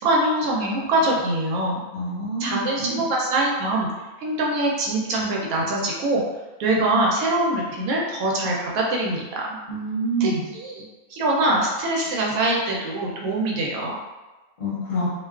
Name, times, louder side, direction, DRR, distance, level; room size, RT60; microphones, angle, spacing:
voice 1, 0.0-1.8 2.4-3.9 4.2-6.2 6.6-9.6 10.2-10.8 11.1-14.0, right 1 dB, 75° right, -2 dB, 1.0 m, -23 dB
voice 2, 1.9-3.0 9.7-10.4 14.6-15.1, right 1 dB, 45° left, -8 dB, 0.8 m, -27 dB
2.4 x 2.2 x 2.3 m, 1.2 s
omnidirectional pair, 1.6 m